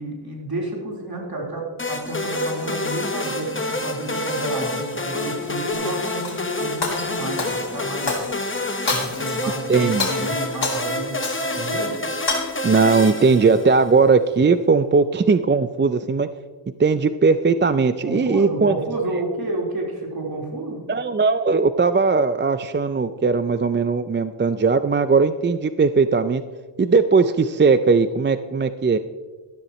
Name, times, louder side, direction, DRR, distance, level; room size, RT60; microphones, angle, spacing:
voice 1, 0.0-8.2 8.9-11.9 18.0-20.8, right 2 dB, 50° right, -2 dB, 4.1 m, -30 dB
sound 1, 1.8-14.0, left 2 dB, 25° left, 1.4 m, -28 dB
Shatter, 5.7-6.4 6.8-8.5 8.9-9.5 9.9-11.7 12.0-12.4, left 3 dB, 55° left, 3.3 m, -28 dB
voice 2, 9.7-10.3 12.6-16.3 16.8-18.8 20.9-26.4 26.8-29.0, right 4 dB, 25° right, 12 dB, 0.4 m, -18 dB
13.5 x 13.0 x 3.1 m, 1.4 s
wide cardioid pair, 70°, 47 cm